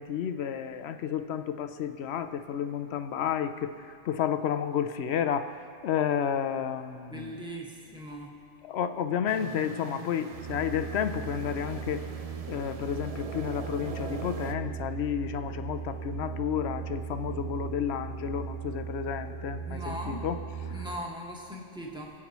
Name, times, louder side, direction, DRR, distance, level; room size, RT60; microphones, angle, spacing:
voice 1, 0.0-7.4 8.6-12.1 12.5-20.9, left 8 dB, 65° left, 10 dB, 0.8 m, -31 dB
voice 2, 7.1-8.3 19.6-20.2 20.7-22.1, equal, 5° right, -3 dB, 1.5 m, -39 dB
sound 1, 9.3-14.5, right 5 dB, 50° right, 0.4 m, -42 dB
sound 2, 10.3-20.9, right 6 dB, 90° right, 2.3 m, -38 dB
24.5 x 8.5 x 3.0 m, 2.4 s
omnidirectional pair, 1.3 m